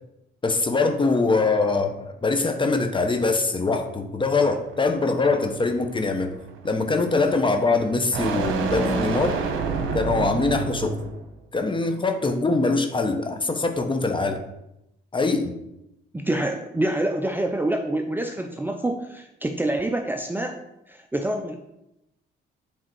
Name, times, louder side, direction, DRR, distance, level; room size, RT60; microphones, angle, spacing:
voice 1, 0.4-6.3 6.6-9.4 9.9-11.0 11.5-14.4 15.1-15.5, left 3 dB, 25° left, 6 dB, 0.9 m, -23 dB
sound 1, 4.3-11.3, right 5 dB, 80° right, 0.9 m, -30 dB
voice 2, 16.1-20.6 20.9-21.6, right 1 dB, 10° right, 4 dB, 0.5 m, -26 dB
7.6 x 3.6 x 4.6 m, 0.86 s
cardioid pair, 90°, 20 cm